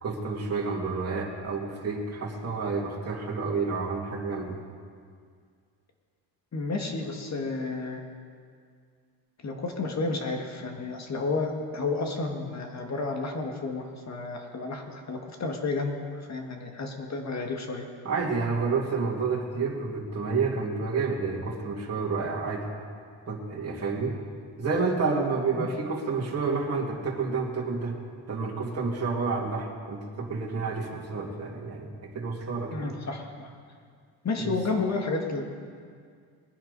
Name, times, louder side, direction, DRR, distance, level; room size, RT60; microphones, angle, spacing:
voice 1, 0.0-4.6 18.0-22.7 23.3-24.2 24.6-28.0 28.3-32.9, right 4 dB, 35° right, -3 dB, 2.4 m, -29 dB
voice 2, 6.5-8.0 9.4-17.9 25.6-25.7 32.7-33.5 34.2-35.4, left 3 dB, 35° left, 3 dB, 1.9 m, -31 dB
20.0 x 10.5 x 4.1 m, 2.1 s
cardioid pair, 85°, 44 cm